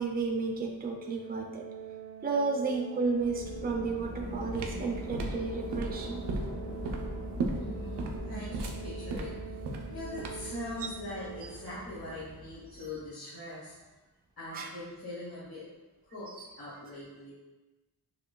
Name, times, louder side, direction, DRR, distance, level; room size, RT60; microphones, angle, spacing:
voice 1, 0.0-1.6 2.2-6.2 12.7-12.8 14.5-14.7 16.4-16.5, right 4 dB, 25° right, 1 dB, 0.3 m, -32 dB
Organ, 1.0-11.9, right 7 dB, 40° left, 0.7 m, -45 dB
sound 1, 3.2-13.1, left 1 dB, 80° left, 0.9 m, -42 dB
sound 2, 4.1-10.6, right 3 dB, 85° right, 0.6 m, -36 dB
voice 2, 7.5-9.6 9.9-13.8 14.4-15.6 16.1-16.3 16.6-17.3, left 1 dB, 65° left, -11 dB, 1.3 m, -42 dB
5.8 x 2.2 x 2.2 m, 1.1 s
wide cardioid pair, 155°, 40 cm